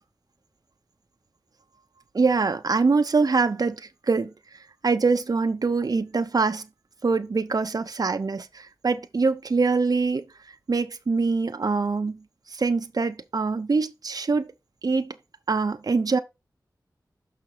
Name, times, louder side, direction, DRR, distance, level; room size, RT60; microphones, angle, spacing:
voice 1, 2.1-6.7 7.0-14.5 14.8-15.2 15.5-16.2, right 4 dB, 55° right, 0.7 m, -24 dB
6.1 x 5.9 x 4.4 m
wide cardioid pair, 60°, 8 cm